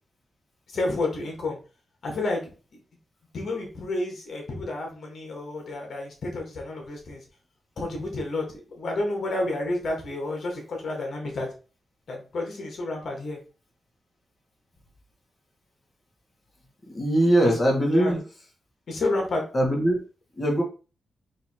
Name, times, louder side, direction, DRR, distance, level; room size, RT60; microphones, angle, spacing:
voice 1, 0.7-1.6 2.0-2.5 3.3-7.2 7.8-11.5 12.1-13.4 17.9-18.2 18.9-19.4, left 2 dB, 60° left, 1 dB, 1.6 m, -30 dB
voice 2, 16.9-18.2 19.5-20.0 20.4-20.6, right 1 dB, 25° left, -1 dB, 1.6 m, -21 dB
4.0 x 2.9 x 4.3 m, 0.35 s
wide cardioid pair, 125°, 0 cm